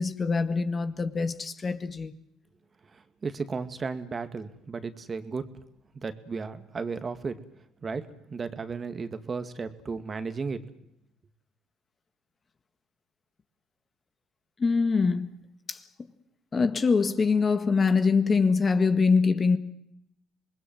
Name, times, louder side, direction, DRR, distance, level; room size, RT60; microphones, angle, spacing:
voice 1, 0.0-2.1 14.6-15.3 15.7-15.8 16.5-19.6, left 4 dB, 35° left, 1.8 m, -24 dB
voice 2, 2.9-5.5 5.9-7.4 7.8-10.6, right 4 dB, 35° right, 2.1 m, -34 dB
27.0 x 20.5 x 7.7 m
hypercardioid pair, 65°, 0 cm